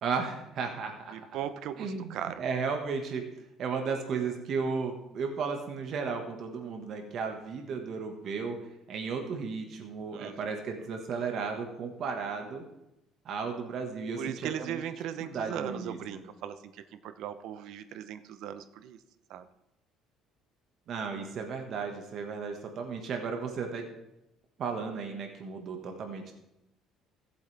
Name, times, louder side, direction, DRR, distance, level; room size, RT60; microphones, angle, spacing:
voice 1, 0.0-1.2 1.8-3.2 3.6-8.6 8.9-12.6 13.2-14.8 15.2-16.0 20.9-23.9 24.6-26.3, right 5 dB, 50° right, 4 dB, 1.6 m, -34 dB
voice 2, 1.1-2.4 10.1-10.4 14.2-19.0 19.3-19.5, right 10 dB, 70° right, 11 dB, 0.8 m, -38 dB
17.5 x 7.9 x 3.5 m, 0.88 s
cardioid pair, 135°, 0 cm